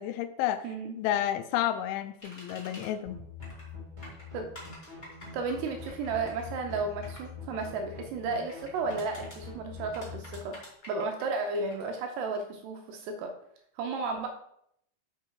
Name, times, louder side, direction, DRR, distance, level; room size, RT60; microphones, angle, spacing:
voice 1, 0.0-0.7 1.0-3.2, left 12 dB, 85° left, 11 dB, 3.0 m, -30 dB
voice 2, 0.6-1.0 4.3-4.5 5.3-10.6 10.9-13.3 13.8-14.3, right 4 dB, 75° right, 4 dB, 2.6 m, -33 dB
sound 1, 2.2-2.9 3.4-3.7 4.0-7.3 8.3-9.4 9.9-11.8, equal, 30° left, 1.2 m, -49 dB
sound 2, 3.1-10.4, left 5 dB, 20° right, 1.1 m, -45 dB
7.6 x 5.8 x 4.7 m, 0.72 s
omnidirectional pair, 5.4 m